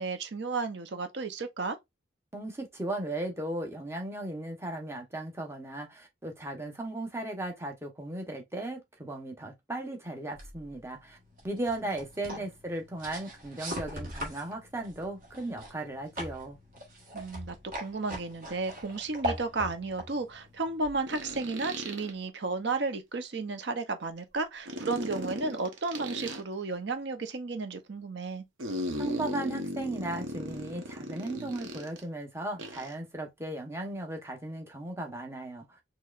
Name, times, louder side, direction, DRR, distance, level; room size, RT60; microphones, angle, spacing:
voice 1, 0.0-1.8 17.1-28.4, right 3 dB, 60° right, 0.7 m, -33 dB
voice 2, 2.3-11.2 11.4-16.6 29.0-35.8, right 1 dB, 15° right, 0.9 m, -36 dB
sound 1, 10.3-21.5, equal, 45° right, 1.3 m, -41 dB
sound 2, 18.5-18.6 21.1-22.1 24.7-26.4 28.6-32.0 32.6-32.9, equal, 90° right, 0.9 m, -37 dB
4.6 x 3.0 x 2.4 m
head